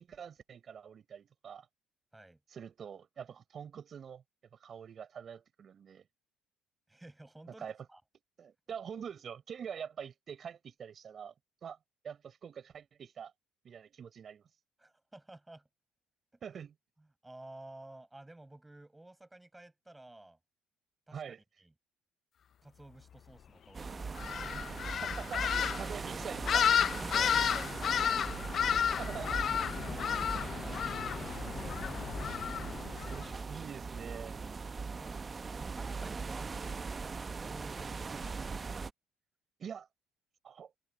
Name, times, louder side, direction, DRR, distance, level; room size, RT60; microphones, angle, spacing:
voice 1, 0.0-1.7 2.5-4.2 4.6-6.0 7.6-7.7 8.4-11.3 11.6-11.8 12.0-13.3 13.6-14.4 16.4-16.7 21.1-21.4 24.7-26.7 28.6-29.4 30.4-30.6 31.8-31.9 33.1-34.4 38.4-38.5 39.6-39.9 40.4-40.7, right 7 dB, 45° right, 4.4 m, -45 dB
voice 2, 6.9-8.0 14.8-15.7 16.5-16.6 17.0-20.4 21.1-21.2 21.6-21.7 22.6-24.3 26.9-28.2 29.8-32.4 35.0-35.2 35.5-38.3, right 2 dB, 10° right, 6.7 m, -53 dB
sound 1, 23.7-38.9, right 4 dB, 30° right, 0.7 m, -40 dB
sound 2, 24.2-33.2, left 8 dB, 50° left, 0.4 m, -32 dB
supercardioid pair, 85°, 0 cm